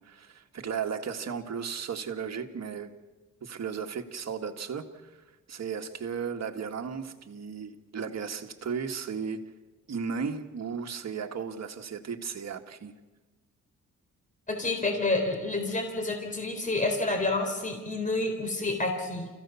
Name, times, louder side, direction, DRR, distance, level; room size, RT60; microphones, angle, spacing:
voice 1, 0.0-2.9 3.4-5.1 5.5-9.5 9.9-12.9, right 6 dB, 55° right, 1.9 m, -35 dB
voice 2, 14.5-19.3, left 2 dB, 25° left, 3.9 m, -29 dB
30.0 x 15.5 x 7.1 m
cardioid pair, 90°, 32 cm